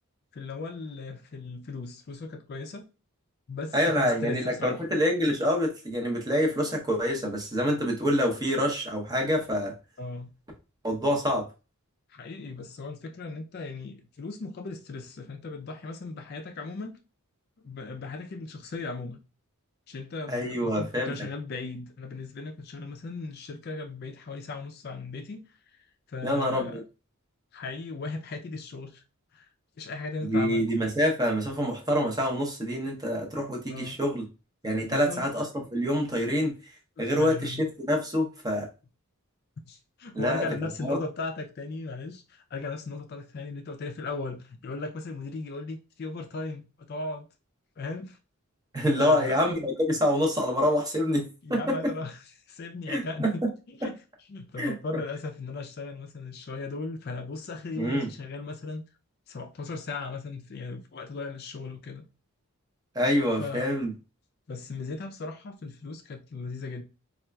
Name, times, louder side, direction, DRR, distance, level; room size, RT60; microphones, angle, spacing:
voice 1, 0.3-2.8 3.5-4.8 10.0-10.3 12.1-17.0 17.6-19.2 19.9-25.6 26.1-26.8 27.5-29.0 29.3-29.5 29.8-30.7 33.7-34.0 34.9-35.3 37.0-37.6 39.6-47.3 47.8-48.2 49.0-49.4 51.4-52.2 52.5-54.0 54.3-58.8 59.3-62.0 63.4-63.7 64.5-66.8, left 3 dB, 45° left, 0.4 m, -37 dB
voice 2, 3.7-9.7 10.8-11.5 20.3-21.1 26.2-26.8 30.2-34.2 34.6-36.5 37.0-38.7 40.1-40.5 40.8-41.0 48.7-51.9 52.9-53.5 53.8-53.9 54.6-54.7 57.8-58.1 62.9-63.9, equal, 15° right, 0.7 m, -26 dB
4.2 x 2.4 x 2.2 m
head